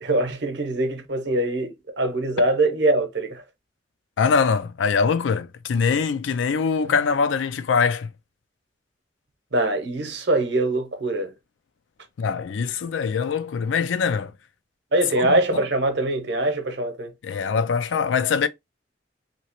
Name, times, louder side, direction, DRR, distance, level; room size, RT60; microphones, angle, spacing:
voice 1, 0.0-3.4 6.8-6.9 9.5-11.3 14.9-17.1, right 2 dB, 65° right, 0.8 m, -23 dB
voice 2, 4.2-8.1 12.2-14.3 15.2-15.6 17.2-18.5, left 5 dB, 90° left, 0.4 m, -23 dB
2.9 x 2.8 x 2.9 m
head